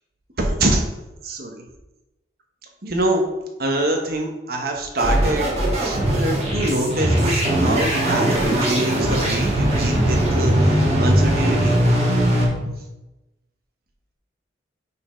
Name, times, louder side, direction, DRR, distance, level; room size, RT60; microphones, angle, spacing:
voice 1, 0.4-0.8 1.2-1.7 2.8-3.2 3.6-5.5 5.8-10.5 11.0-11.7, right 1 dB, 55° right, 2 dB, 1.1 m, -24 dB
sound 1, 5.0-12.5, right 1 dB, 35° right, 1.8 m, -20 dB
sound 2, 5.9-12.7, right 1 dB, 85° right, 1.1 m, -28 dB
5.4 x 4.4 x 5.1 m, 1.0 s
head